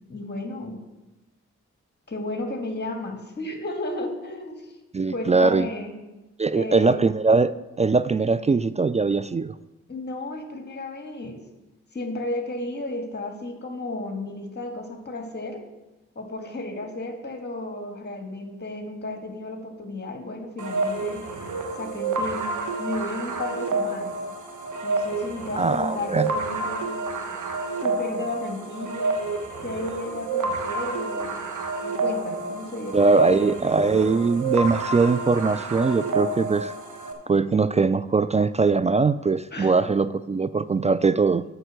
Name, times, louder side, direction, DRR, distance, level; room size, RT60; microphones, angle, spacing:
voice 1, 0.1-0.8 2.1-4.8 5.1-5.9 6.5-7.0 9.9-11.4 11.9-15.6 16.2-21.2 21.8-22.5 22.8-24.1 24.8-26.9 27.8-29.2 29.6-31.4 31.8-33.5 39.5-39.9, left 2 dB, 35° left, 3 dB, 1.9 m, -33 dB
voice 2, 4.9-5.7 6.4-7.5 7.8-9.5 25.6-26.3 32.9-36.7 37.3-41.4, right 4 dB, 25° right, 15 dB, 0.3 m, -21 dB
sound 1, 20.6-37.1, right 3 dB, 80° right, 1.3 m, -29 dB
7.9 x 5.9 x 6.3 m, 1.1 s
supercardioid pair, 40°, 30 cm